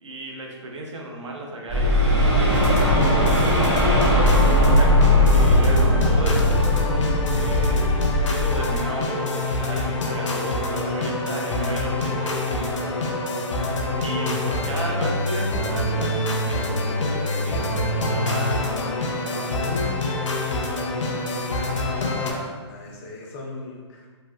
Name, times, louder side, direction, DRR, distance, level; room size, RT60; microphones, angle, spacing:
voice 1, 0.0-2.7 4.6-7.9 8.2-13.1 14.0-20.4, right 1 dB, 75° right, 0 dB, 0.7 m, -34 dB
sound 1, 1.7-8.8, left 1 dB, 25° right, 1.1 m, -19 dB
sound 2, 2.5-22.3, left 1 dB, 85° left, 0.5 m, -25 dB
voice 2, 4.5-5.0 21.7-24.1, left 2 dB, 30° left, -2 dB, 0.5 m, -39 dB
3.1 x 2.6 x 2.2 m, 1.4 s
hypercardioid pair, 145°, 15 cm